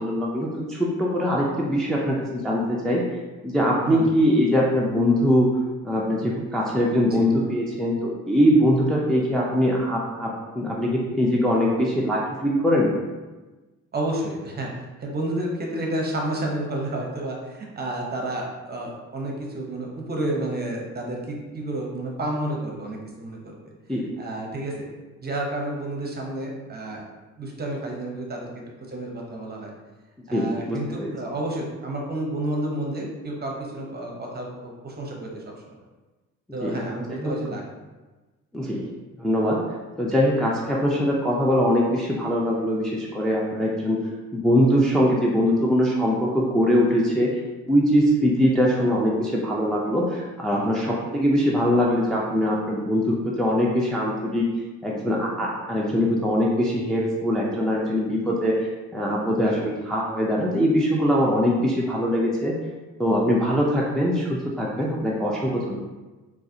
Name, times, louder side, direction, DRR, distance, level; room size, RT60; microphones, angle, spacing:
voice 1, 0.0-3.0 3.4-5.5 5.8-10.3 10.5-12.9 23.9-24.0 30.3-31.1 36.6-36.7 37.2-37.3 38.5-38.8 39.2-39.6 40.0-44.0 44.3-47.3 47.7-54.5 54.8-62.5 63.0-65.8, equal, ahead, -4 dB, 0.4 m, -22 dB
voice 2, 13.9-14.7 15.0-23.7 24.2-24.9 25.2-27.0 27.4-28.5 28.9-29.7 30.3-35.4 36.5-37.6 50.5-50.7 59.4-59.6, right 1 dB, 30° right, 0 dB, 0.8 m, -30 dB
4.0 x 2.4 x 2.6 m, 1.2 s
cardioid pair, 90°, 30 cm